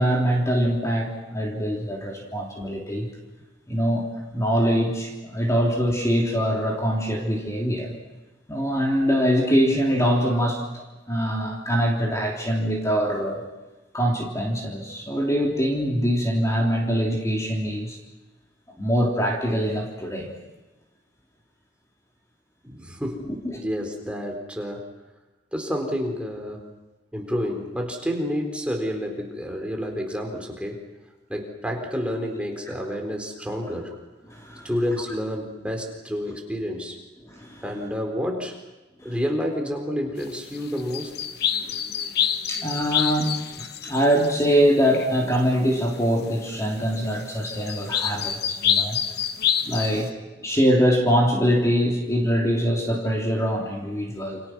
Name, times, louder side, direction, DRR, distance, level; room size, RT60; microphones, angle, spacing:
voice 1, 0.0-3.1 3.7-7.9 8.5-13.4 13.9-18.0 18.8-20.3 23.3-23.6 34.3-34.7 37.2-37.6 39.0-39.1 42.5-49.0 49.6-50.1 50.4-54.4, equal, 15° left, -1 dB, 3.5 m, -23 dB
voice 2, 22.6-23.3 23.6-24.8 25.5-26.6 27.1-30.8 31.3-33.9 34.6-37.0 37.6-38.6 39.0-41.2 49.9-50.0, equal, 5° right, 2 dB, 4.0 m, -29 dB
sound 1, 40.2-45.8 46.1-50.1, left 8 dB, 60° left, 1.1 m, -28 dB
29.0 x 27.5 x 6.2 m, 1.1 s
head